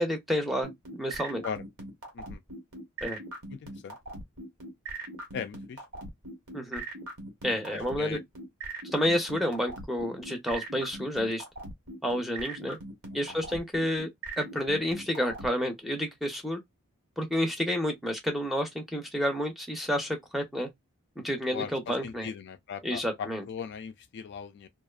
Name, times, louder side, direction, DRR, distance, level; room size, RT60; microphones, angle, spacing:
voice 1, 0.0-1.4 3.0-3.2 6.5-6.8 7.4-8.2 8.9-11.4 12.0-12.8 13.1-14.1 14.4-16.6 17.2-20.7 21.2-22.3 22.8-23.4, equal, ahead, 0.6 m, -30 dB
sound 1, 0.6-15.5, right 2 dB, 70° right, 1.3 m, -40 dB
voice 2, 3.5-4.0 5.3-5.8 7.6-8.2 13.3-13.5 21.5-24.7, left 7 dB, 50° left, 0.3 m, -39 dB
2.5 x 2.3 x 2.3 m
head